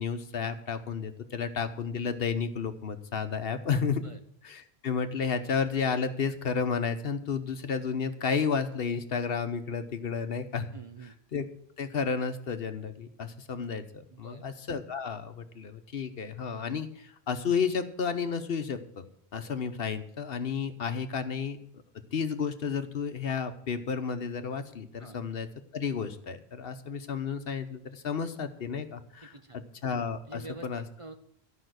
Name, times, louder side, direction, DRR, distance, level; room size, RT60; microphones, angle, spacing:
voice 1, 0.0-4.0 4.4-10.7 11.3-11.4 11.8-19.1 19.3-21.6 22.1-25.5 25.7-30.8, left 6 dB, 65° left, 9 dB, 1.1 m, -32 dB
voice 2, 10.7-11.2 14.1-14.4 25.0-25.2 29.3-29.6 30.3-31.2, right 3 dB, 35° right, 6 dB, 0.7 m, -46 dB
13.5 x 5.6 x 7.8 m, 0.71 s
omnidirectional pair, 1.1 m